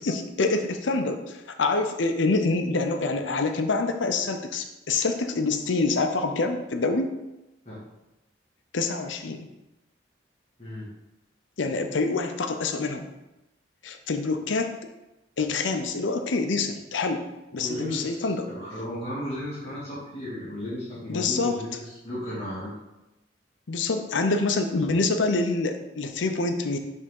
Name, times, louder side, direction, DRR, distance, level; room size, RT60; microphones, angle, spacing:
voice 1, 0.1-7.1 8.7-9.5 11.6-13.1 13.8-14.7 15.4-17.2 17.5-18.5 21.1-21.5 23.7-26.8, left 3 dB, 80° left, 6 dB, 0.6 m, -26 dB
voice 2, 17.5-22.7, left 1 dB, 35° left, -9 dB, 2.1 m, -34 dB
5.4 x 3.6 x 5.3 m, 0.99 s
head